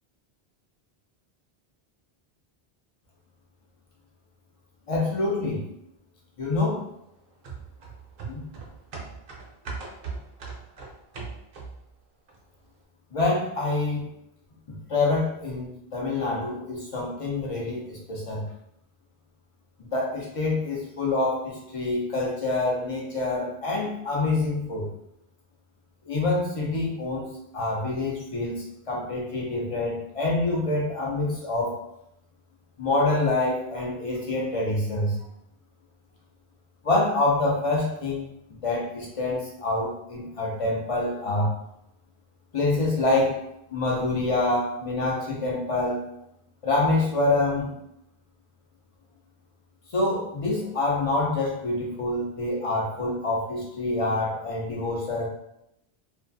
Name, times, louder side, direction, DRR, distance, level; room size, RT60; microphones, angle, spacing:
voice 1, 4.9-5.6 6.4-6.8 8.3-8.4 13.1-14.0 14.9-18.4 19.8-24.8 26.1-27.3 27.5-31.7 32.8-35.2 36.8-38.2 38.6-41.5 42.5-43.3 43.7-46.0 46.6-47.7 49.9-55.3, left 2 dB, 45° left, -2 dB, 0.5 m, -26 dB
sound 1, 7.4-11.9 12.3-12.4, right 4 dB, 60° right, 0.6 m, -39 dB
2.3 x 2.3 x 2.5 m, 0.80 s
omnidirectional pair, 1.0 m